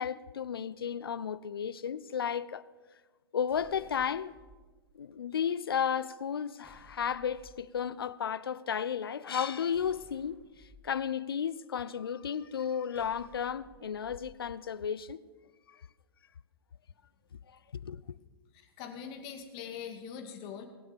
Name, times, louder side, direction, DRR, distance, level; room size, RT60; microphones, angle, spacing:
voice 1, 0.0-2.6 3.3-4.3 4.9-10.4 10.8-15.2 15.7-15.8 17.8-18.2, left 8 dB, 75° left, 0.5 m, -33 dB
sound 1, 3.5-4.6 6.6-7.6 9.7-10.8 12.9-14.4, right 1 dB, 15° right, 2.1 m, -57 dB
voice 2, 18.5-20.7, left 7 dB, 40° left, 2.3 m, -42 dB
19.5 x 7.9 x 7.0 m
figure-of-eight pair, 100°, 13 cm